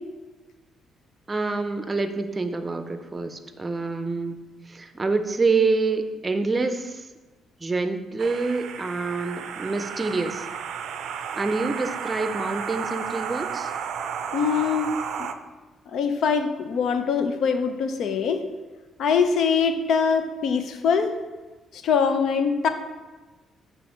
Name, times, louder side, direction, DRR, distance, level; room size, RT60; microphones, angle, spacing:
voice 1, 1.3-7.1 7.6-10.5 11.4-13.7, right 3 dB, 25° right, 8 dB, 0.6 m, -27 dB
sound 1, 8.2-15.3, right 7 dB, 75° right, 0.4 m, -33 dB
voice 2, 14.3-14.9 15.9-18.4 19.0-21.1 21.7-22.7, left 6 dB, 70° left, 8 dB, 0.6 m, -23 dB
6.0 x 3.4 x 6.0 m, 1.2 s
cardioid pair, 90°, 0 cm